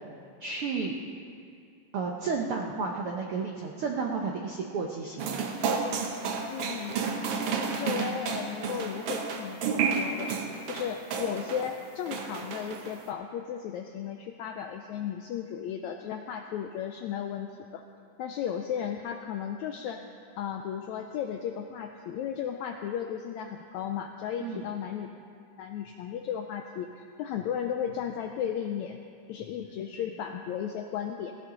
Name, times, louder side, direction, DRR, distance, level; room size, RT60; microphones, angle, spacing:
voice 1, 0.4-1.0 1.9-5.5 24.4-24.6, right 4 dB, 90° right, 1 dB, 1.2 m, -32 dB
sound 1, 5.2-11.7 12.1-13.0, right 5 dB, 65° right, 1.5 m, -31 dB
voice 2, 6.5-7.0 7.6-10.3 10.7-17.8 18.2-20.0 20.4-25.1 25.6-29.0 29.3-31.3, left 8 dB, 85° left, 5 dB, 1.6 m, -35 dB
17.5 x 16.0 x 3.9 m, 2.4 s
omnidirectional pair, 3.9 m